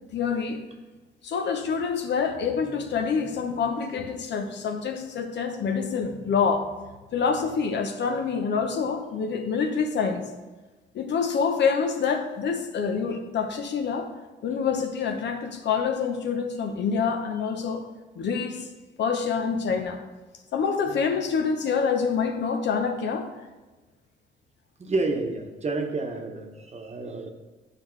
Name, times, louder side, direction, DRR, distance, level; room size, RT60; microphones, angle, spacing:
voice 1, 0.1-0.6 1.2-6.7 7.1-10.2 10.9-14.1 14.4-17.8 18.2-18.7 19.0-20.0 20.5-23.3, left 6 dB, 60° left, 6 dB, 0.9 m, -26 dB
voice 2, 24.8-27.3, right 3 dB, 35° right, 3 dB, 1.0 m, -29 dB
9.4 x 5.0 x 3.2 m, 1.2 s
cardioid pair, 90°, 20 cm